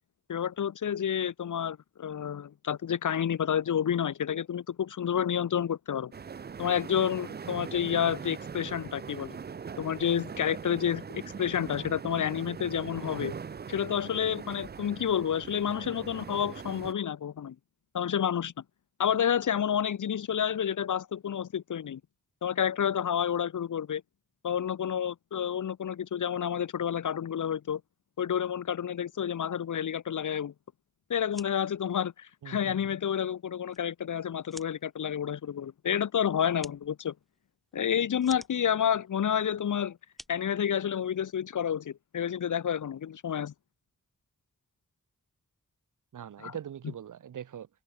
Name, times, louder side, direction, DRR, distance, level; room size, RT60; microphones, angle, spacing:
voice 1, 0.3-6.1 6.6-9.4 9.8-13.3 13.7-17.6 17.9-18.5 19.0-22.0 22.4-24.0 24.4-27.8 28.2-30.5 31.1-37.1 37.7-40.0 40.3-43.5 46.4-46.6, left 8 dB, 75° left, 0.6 m, -29 dB
sound 1, 6.1-16.9, right 6 dB, 35° right, 0.4 m, -41 dB
sound 2, 31.2-41.4, equal, ahead, 4.5 m, -54 dB
voice 2, 32.4-32.9 46.1-47.7, right 9 dB, 80° right, 0.6 m, -42 dB
wide cardioid pair, 65°, 31 cm